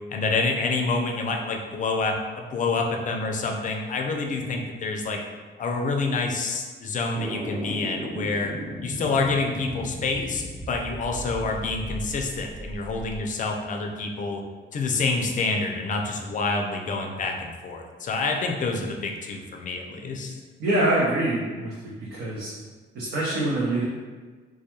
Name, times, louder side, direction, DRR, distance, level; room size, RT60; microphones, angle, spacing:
voice 1, 0.1-5.2 5.6-8.5 8.8-14.4 14.7-20.3, left 3 dB, 40° left, 2 dB, 0.4 m, -27 dB
sound 1, 7.1-13.2, equal, 55° right, 1.0 m, -36 dB
voice 2, 20.6-22.5 22.9-23.8, right 1 dB, 75° right, -7 dB, 0.6 m, -25 dB
2.2 x 2.2 x 2.9 m, 1.4 s
cardioid pair, 90°, 20 cm